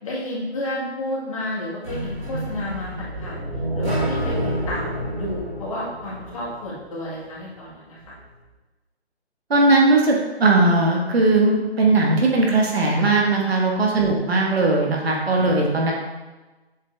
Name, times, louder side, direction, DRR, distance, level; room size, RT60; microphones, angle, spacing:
voice 1, 0.0-3.4 3.7-8.1 13.9-14.2, left 1 dB, 30° left, -8 dB, 1.7 m, -31 dB
sound 1, 1.8-6.8, right 1 dB, 15° right, 1.3 m, -28 dB
voice 2, 9.5-15.9, right 2 dB, 65° right, -1 dB, 1.6 m, -18 dB
7.4 x 3.7 x 3.5 m, 1.2 s
hypercardioid pair, 170°, 33 cm